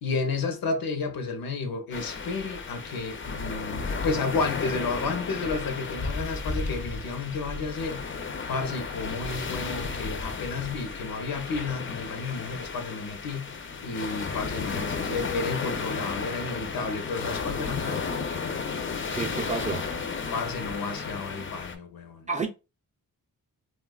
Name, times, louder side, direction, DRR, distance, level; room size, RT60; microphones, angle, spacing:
voice 1, 0.0-13.6 13.8-18.2 20.3-22.3, left 4 dB, 75° left, 0.7 m, -32 dB
sound 1, 1.9-21.8, left 4 dB, 35° left, 0.4 m, -33 dB
voice 2, 19.1-19.9 22.3-22.5, right 4 dB, 20° right, 0.4 m, -30 dB
3.1 x 2.2 x 2.2 m
wide cardioid pair, 90°, 36 cm